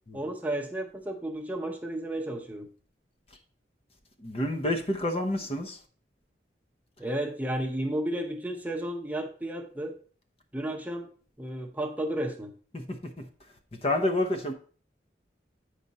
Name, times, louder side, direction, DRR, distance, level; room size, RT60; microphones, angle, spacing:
voice 1, 0.1-2.7 7.0-10.0 10.5-11.1 11.4-12.5, right 1 dB, 10° right, 0.8 m, -32 dB
voice 2, 4.2-5.8 12.7-13.3 13.7-14.5, left 1 dB, 35° left, 0.8 m, -29 dB
8.8 x 5.1 x 4.1 m
head